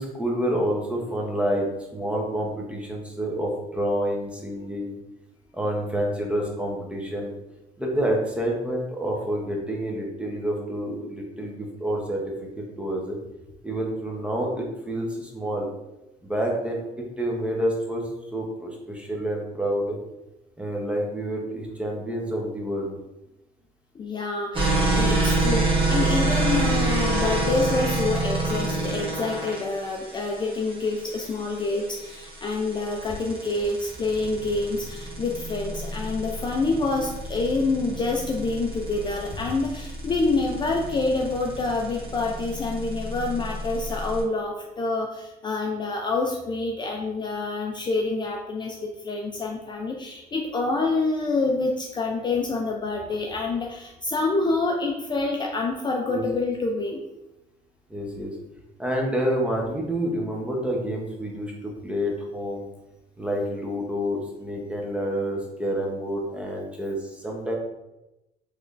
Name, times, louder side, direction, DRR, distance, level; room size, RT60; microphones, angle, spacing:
voice 1, 0.0-5.0 5.5-7.3 7.8-13.2 13.6-15.7 16.2-18.0 18.3-20.0 20.6-23.0 56.1-56.2 57.9-58.4 58.8-62.7 63.2-67.5, equal, 5° right, -1 dB, 0.7 m, -28 dB
voice 2, 23.9-57.0, left 3 dB, 25° left, 1 dB, 0.4 m, -27 dB
sound 1, 24.5-44.2, right 2 dB, 30° right, 0.9 m, -27 dB
3.5 x 3.1 x 2.4 m, 0.95 s
cardioid pair, 110°, 17 cm